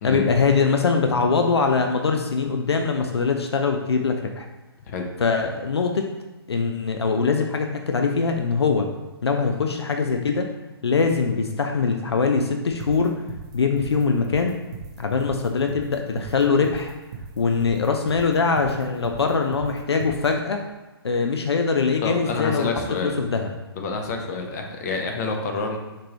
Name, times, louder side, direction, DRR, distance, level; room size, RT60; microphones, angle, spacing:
voice 1, 0.0-4.5 5.2-6.1 6.5-8.9 9.2-10.5 10.8-13.1 13.5-14.5 15.0-16.9 17.4-20.6 21.0-22.7 23.0-23.5, left 5 dB, 80° left, 4 dB, 0.4 m, -22 dB
sound 1, 12.8-20.3, right 5 dB, 40° right, 0.6 m, -37 dB
voice 2, 22.0-23.2 23.8-25.8, left 3 dB, 40° left, 3 dB, 0.6 m, -28 dB
4.4 x 2.6 x 3.0 m, 1.1 s
figure-of-eight pair, 125°, 13 cm